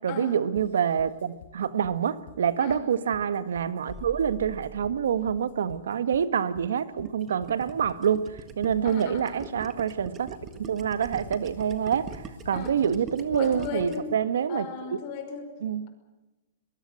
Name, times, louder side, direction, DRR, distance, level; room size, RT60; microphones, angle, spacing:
voice 1, 0.0-10.3 10.6-15.0 15.6-15.9, right 8 dB, 85° right, 13 dB, 1.6 m, -27 dB
sound 1, 0.5-14.1, left 8 dB, 55° left, 5.8 m, -50 dB
sound 2, 3.9-5.7, right 2 dB, 5° left, 1.3 m, -45 dB
Gurgling, 7.0-14.1, right 6 dB, 20° right, 1.6 m, -42 dB
voice 2, 8.8-9.7 12.5-12.7 13.3-14.1 14.5-15.6, left 6 dB, 35° left, 6 dB, 5.3 m, -36 dB
22.5 x 21.0 x 7.8 m, 1.0 s
hypercardioid pair, 165°, 0 cm